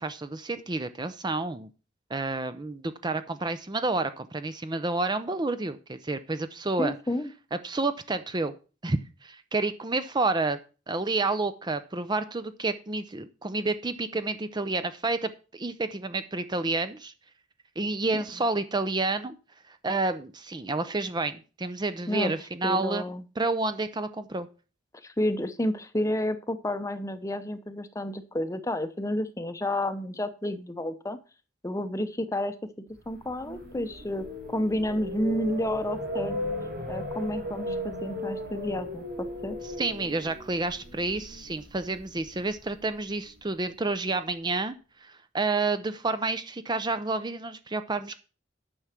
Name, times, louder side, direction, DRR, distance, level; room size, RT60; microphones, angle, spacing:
voice 1, 0.0-1.7 2.1-6.9 7.5-8.5 8.8-10.6 10.9-17.1 17.8-19.4 19.7-23.1 23.4-24.5 39.8-44.7 45.0-48.2, right 3 dB, 25° right, 11 dB, 0.6 m, -29 dB
voice 2, 6.8-7.3 18.1-18.2 22.1-22.3 22.6-23.2 25.0-31.2 31.6-32.5 33.1-36.4 36.9-39.6, left 1 dB, 15° left, 10 dB, 0.8 m, -30 dB
sound 1, 33.1-43.2, left 1 dB, 50° right, 4.4 m, -36 dB
10.0 x 6.2 x 5.9 m, 0.34 s
head